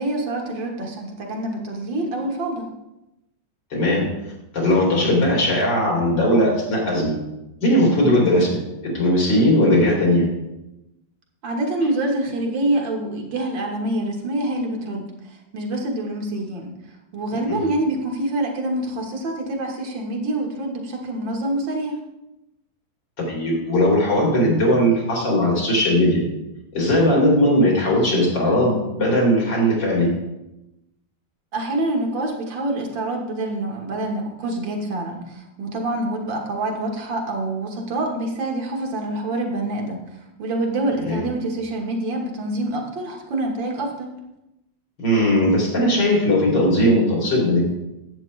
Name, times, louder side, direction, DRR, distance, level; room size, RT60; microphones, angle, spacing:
voice 1, 0.0-2.7 11.4-15.1 15.5-16.7 17.1-22.0 31.5-40.0 40.4-44.1, right 1 dB, 85° right, 1 dB, 2.1 m, -26 dB
voice 2, 3.7-4.1 4.5-7.1 7.6-10.3 17.5-17.6 23.2-26.2 26.7-30.1 41.0-41.3 45.0-47.6, left 1 dB, 80° left, -3 dB, 3.6 m, -18 dB
10.5 x 7.9 x 3.2 m, 0.93 s
omnidirectional pair, 2.0 m